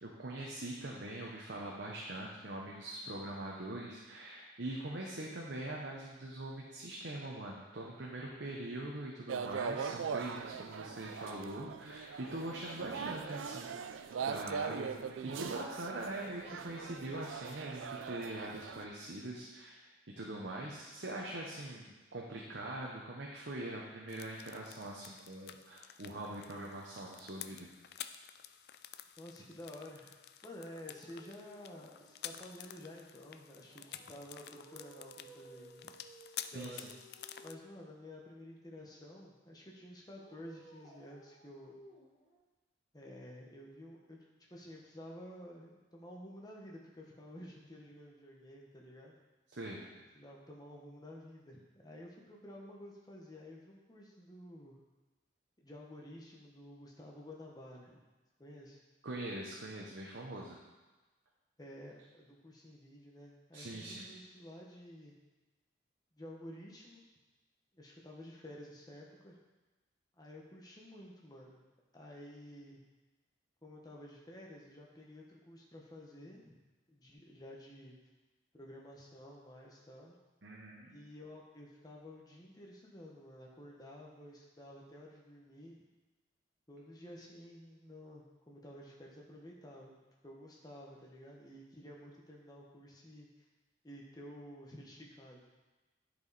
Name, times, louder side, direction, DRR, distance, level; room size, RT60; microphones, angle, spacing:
voice 1, 0.0-14.9 15.2-19.9 20.2-27.7 28.0-28.1 36.5-36.9 49.5-49.8 59.0-60.6 63.5-64.1 80.4-81.0, right 1 dB, 65° right, -3 dB, 0.9 m, -43 dB
sound 1, 9.3-18.9, right 6 dB, 90° right, 0.4 m, -41 dB
voice 2, 13.0-13.4 29.2-35.9 36.5-36.9 37.4-41.8 42.9-44.2 44.5-49.2 50.1-54.8 55.6-58.0 58.4-58.8 61.6-65.2 66.1-67.0 67.7-69.4 70.2-71.6 71.9-72.8 73.6-76.6 76.9-77.9 78.5-80.2 80.9-85.8 86.7-90.0 90.2-93.5 93.8-95.5, left 1 dB, 20° left, -2 dB, 1.1 m, -52 dB
sound 2, 24.1-37.6, left 11 dB, 55° left, 0.3 m, -50 dB
sound 3, 30.6-32.8 33.6-37.9 40.1-42.4, right 2 dB, 35° left, 1.4 m, -58 dB
10.5 x 4.8 x 4.1 m, 1.2 s
head